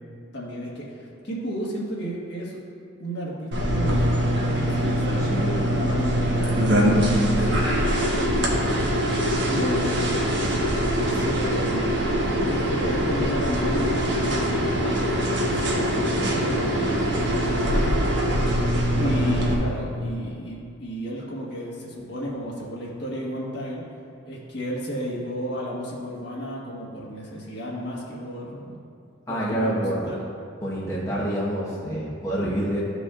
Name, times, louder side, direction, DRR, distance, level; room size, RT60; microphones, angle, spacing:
voice 1, 0.3-2.6 3.0-10.1 11.0-18.0 18.9-23.8 24.2-28.7 29.3-30.2, equal, 55° left, -5 dB, 1.6 m, -33 dB
sound 1, 3.5-19.5, equal, 60° right, 1.3 m, -23 dB
voice 2, 5.2-5.8 17.6-17.9 29.3-30.0 30.6-32.8, right 1 dB, 15° left, -7 dB, 1.1 m, -27 dB
14.5 x 5.1 x 2.5 m, 2.5 s
head